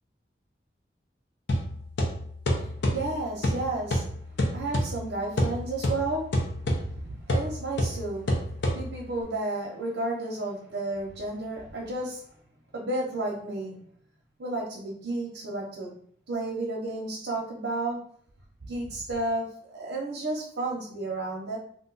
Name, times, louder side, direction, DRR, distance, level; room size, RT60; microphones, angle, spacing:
sound 1, 1.5-9.2, left 1 dB, 80° left, 0.6 m, -29 dB
voice 1, 2.5-4.0 4.5-6.3 6.6-8.3 8.7-12.2 12.7-13.8 14.4-15.9 16.3-18.0 18.6-21.6, right 2 dB, 90° right, -3 dB, 0.7 m, -32 dB
2.5 x 2.3 x 3.8 m, 0.62 s
head